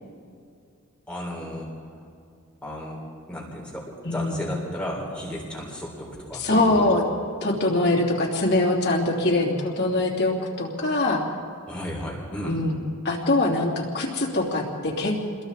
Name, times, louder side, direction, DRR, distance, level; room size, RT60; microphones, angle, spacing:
voice 1, 1.1-1.7 2.6-3.0 3.3-6.9 11.7-12.6, equal, 5° left, -3 dB, 3.7 m, -33 dB
voice 2, 4.0-4.4 6.3-7.0 7.4-11.2 12.4-12.8 13.0-15.1, left 2 dB, 55° left, -1 dB, 3.1 m, -23 dB
29.5 x 21.5 x 4.1 m, 2.4 s
head